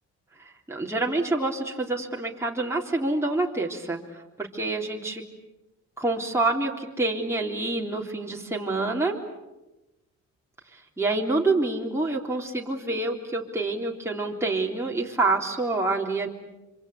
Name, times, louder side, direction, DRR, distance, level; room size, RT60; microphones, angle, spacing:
voice 1, 0.4-4.0 4.4-5.2 6.0-9.2 10.7-16.3, right 2 dB, 10° right, -1 dB, 3.6 m, -27 dB
26.0 x 25.5 x 8.5 m, 1.0 s
cardioid pair, 90°, 30 cm